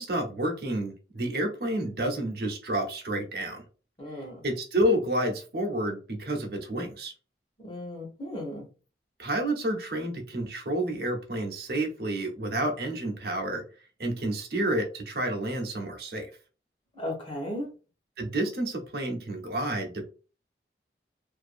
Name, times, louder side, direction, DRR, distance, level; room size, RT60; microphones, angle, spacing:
voice 1, 0.0-3.6 4.4-7.1 9.2-13.6 14.0-16.3 18.2-20.0, right 1 dB, 60° right, 4 dB, 0.7 m, -29 dB
voice 2, 4.0-4.4 7.6-8.6 16.9-17.7, left 1 dB, 30° left, -1 dB, 0.9 m, -35 dB
2.5 x 2.3 x 2.5 m, 0.35 s
head